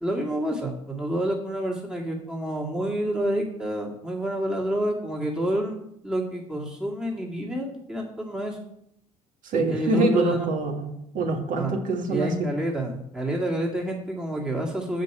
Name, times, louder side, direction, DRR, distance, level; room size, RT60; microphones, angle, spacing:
voice 1, 0.0-8.6 9.7-10.5 11.5-11.7 12.1-15.0, right 1 dB, 5° right, -2 dB, 2.1 m, -28 dB
voice 2, 9.4-12.5, right 2 dB, 50° right, 3 dB, 1.7 m, -25 dB
7.8 x 5.2 x 6.7 m, 0.75 s
figure-of-eight pair, 55°, 17 cm